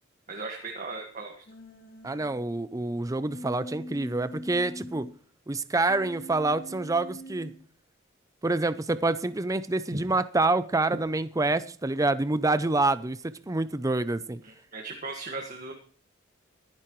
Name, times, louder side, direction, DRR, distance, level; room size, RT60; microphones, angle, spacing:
voice 1, 0.3-1.4 9.9-10.0 14.4-15.7, right 3 dB, 40° right, 1.7 m, -37 dB
Human voice, 1.5-2.3 3.3-5.1 5.9-7.5, equal, 45° left, 2.7 m, -42 dB
voice 2, 2.0-5.1 5.5-7.6 8.4-14.4, right 2 dB, 15° right, 0.5 m, -27 dB
23.5 x 10.5 x 3.1 m
head